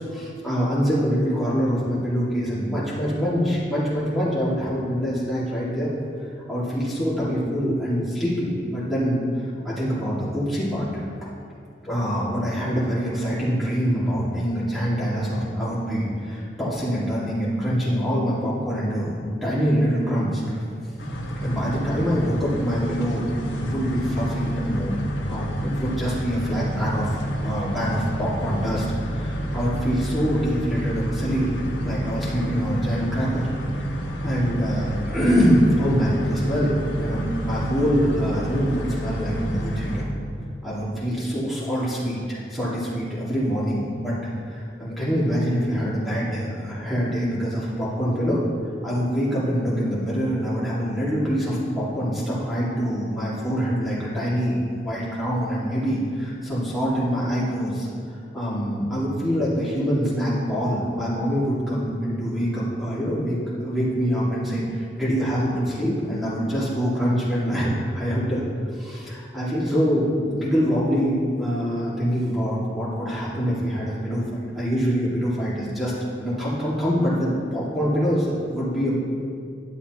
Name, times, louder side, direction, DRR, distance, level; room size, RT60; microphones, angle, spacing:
voice 1, 0.1-5.9 6.5-11.0 11.8-20.6 21.4-24.9 25.3-31.6 31.8-33.5 33.8-40.1 40.6-44.2 44.5-48.4 48.8-57.9 58.3-63.4 63.6-68.4 68.7-75.9 76.2-79.0, equal, ahead, -10 dB, 2.2 m, -25 dB
sound 1, 21.0-40.0, equal, 80° left, 1.2 m, -29 dB
11.5 x 7.1 x 3.0 m, 2.3 s
head